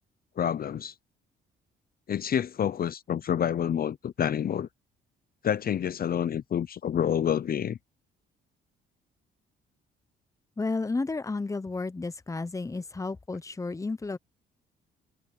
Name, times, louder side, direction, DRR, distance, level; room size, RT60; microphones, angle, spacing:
voice 1, 0.4-0.9 2.1-4.7 5.4-7.8, left 9 dB, 50° left, 0.7 m, -28 dB
voice 2, 10.6-14.2, left 3 dB, 15° left, 0.9 m, -32 dB
cardioid pair, 90°, 20 cm